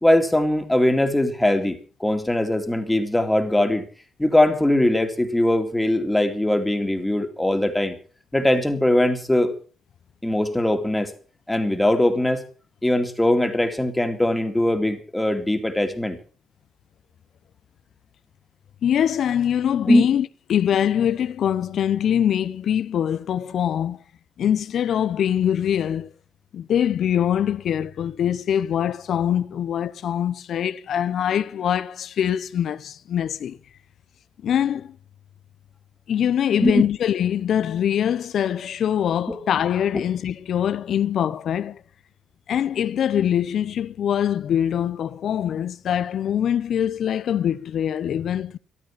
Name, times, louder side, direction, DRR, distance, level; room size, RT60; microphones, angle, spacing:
voice 1, 0.0-3.9 4.2-8.0 8.3-9.5 10.2-11.1 11.5-12.4 12.8-16.2 19.9-20.0 36.6-36.8 39.3-39.4, left 1 dB, 10° left, 2.4 m, -21 dB
voice 2, 18.8-24.0 24.4-26.1 26.5-33.6 34.4-35.0 36.1-41.8 42.5-48.6, left 9 dB, 65° left, 0.8 m, -23 dB
13.5 x 12.5 x 5.9 m
cardioid pair, 90°, 0 cm